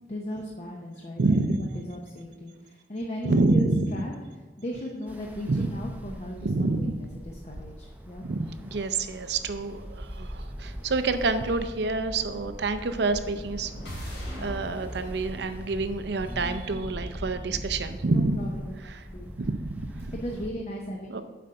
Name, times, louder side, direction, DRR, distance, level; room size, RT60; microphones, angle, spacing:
voice 1, 0.1-3.7 3.9-4.1 4.6-8.3 18.1-18.7 19.1-19.3 20.1-21.2, equal, 35° left, 0 dB, 0.7 m, -37 dB
voice 2, 1.2-1.6 3.2-3.9 5.5-5.7 6.4-6.9 8.2-18.4 18.9-19.0 19.4-20.2 21.1-21.2, right 3 dB, 70° right, 9 dB, 0.6 m, -27 dB
Ocean, 5.1-20.5, equal, 10° right, 0.6 m, -41 dB
sound 1, 12.9-16.9, equal, 80° left, 2.6 m, -42 dB
7.7 x 5.1 x 5.6 m, 1.3 s
head